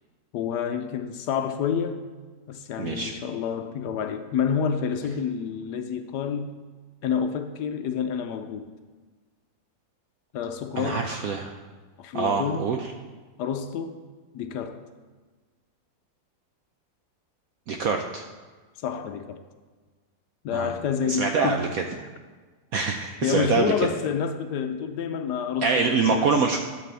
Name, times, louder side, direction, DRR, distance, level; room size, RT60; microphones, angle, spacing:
voice 1, 0.3-2.0 2.5-6.6 7.0-8.7 10.3-11.1 12.0-12.7 13.4-14.0 14.3-14.8 18.8-19.4 20.4-21.7 23.2-26.4, left 7 dB, 70° left, 1.0 m, -28 dB
voice 2, 2.8-3.1 10.8-11.6 12.1-12.9 17.7-18.3 20.5-20.7 21.1-21.8 22.7-23.7 25.6-26.6, right 5 dB, 75° right, 0.8 m, -25 dB
13.0 x 7.4 x 3.4 m
omnidirectional pair, 2.0 m